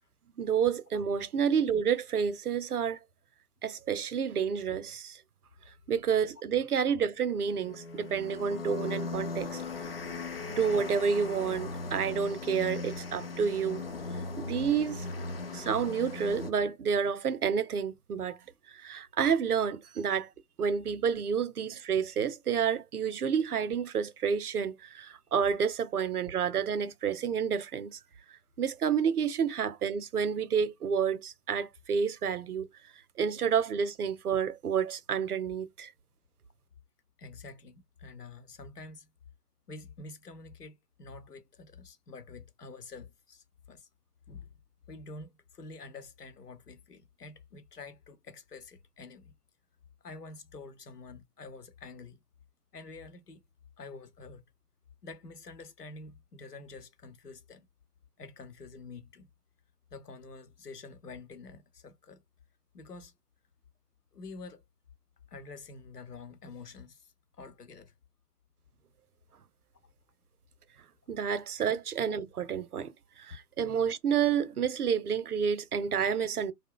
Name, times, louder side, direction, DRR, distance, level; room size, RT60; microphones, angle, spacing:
voice 1, 0.4-3.0 3.6-5.2 5.9-9.6 10.5-13.8 14.4-15.1 15.5-18.4 18.7-20.3 20.6-28.0 28.6-32.7 33.2-35.9 71.1-76.5, right 7 dB, 70° right, 0.6 m, -29 dB
sound 1, 7.4-16.5, left 3 dB, 40° left, 0.5 m, -38 dB
voice 2, 37.2-39.1 39.7-43.9 44.3-44.5 44.9-49.3 50.0-52.2 52.7-53.4 53.8-54.4 55.0-57.7 58.2-59.3 59.9-62.2 62.7-63.1 64.1-64.6 65.3-67.9, left 3 dB, 75° left, 0.9 m, -47 dB
2.3 x 2.1 x 3.6 m
figure-of-eight pair, 135°, 47 cm